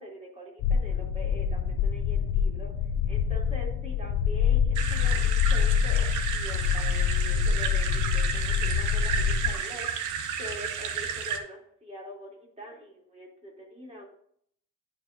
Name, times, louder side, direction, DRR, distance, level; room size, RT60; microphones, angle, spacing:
voice 1, 0.0-2.7 3.0-6.1 6.3-14.0, equal, 20° right, -2 dB, 3.0 m, -44 dB
sound 1, 0.6-9.5, left 7 dB, 90° left, 0.5 m, -26 dB
sound 2, 4.7-11.4, right 7 dB, 80° right, 0.9 m, -32 dB
11.0 x 4.7 x 2.6 m, 0.66 s
cardioid pair, 90°, 30 cm